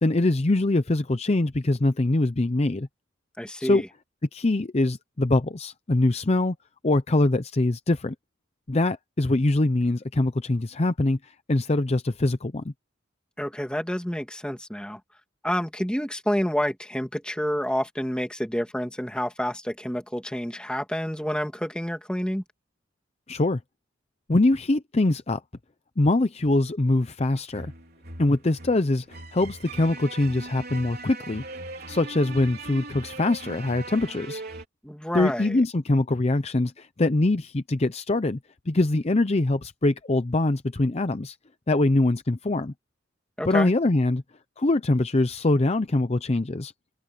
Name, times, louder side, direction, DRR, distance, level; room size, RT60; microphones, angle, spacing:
voice 1, 0.0-2.9 3.6-3.8 4.3-6.5 6.8-8.1 8.7-12.7 23.3-23.6 24.3-25.4 26.0-27.7 28.2-31.4 31.9-34.4 35.1-38.4 38.7-41.4 41.7-42.7 43.4-44.2 44.6-46.7, left 2 dB, 35° left, 0.6 m, -23 dB
voice 2, 3.4-3.9 13.4-15.0 15.4-22.4 34.8-35.6 43.4-43.7, equal, 5° left, 2.2 m, -29 dB
sound 1, 27.5-34.6, right 2 dB, 55° right, 4.1 m, -40 dB
head